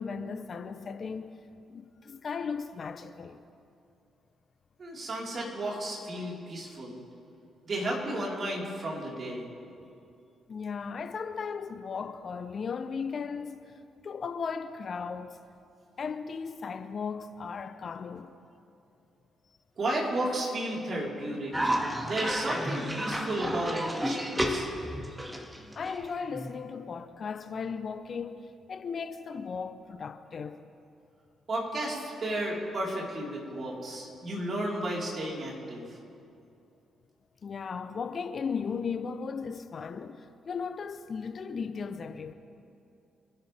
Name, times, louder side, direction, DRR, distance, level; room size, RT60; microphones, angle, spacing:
voice 1, 0.0-1.4 1.7-3.4 10.5-13.6 14.0-15.4 16.0-18.3 25.7-30.6 37.4-42.3, left 5 dB, 50° left, 0.8 m, -36 dB
voice 2, 4.8-7.0 7.6-9.4 19.8-21.7 22.0-24.7 31.5-35.9, right 1 dB, 50° right, 4.4 m, -33 dB
Cough, 21.5-26.6, equal, 15° right, 2.0 m, -32 dB
26.5 x 11.5 x 3.5 m
hypercardioid pair, 40°, 0 cm